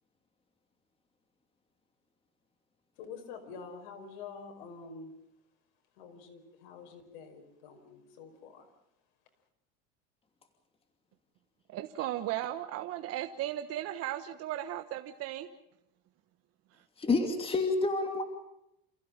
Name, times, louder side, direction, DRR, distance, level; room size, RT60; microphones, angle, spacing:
voice 1, 3.0-5.1 6.0-8.7, left 5 dB, 80° left, 5 dB, 5.2 m, -47 dB
voice 2, 11.7-15.5 16.8-16.9, right 13 dB, 55° right, 7 dB, 1.3 m, -36 dB
voice 3, 17.0-18.2, left 3 dB, 20° left, 5 dB, 2.8 m, -28 dB
28.5 x 15.5 x 7.4 m, 0.84 s
supercardioid pair, 120°, 29 cm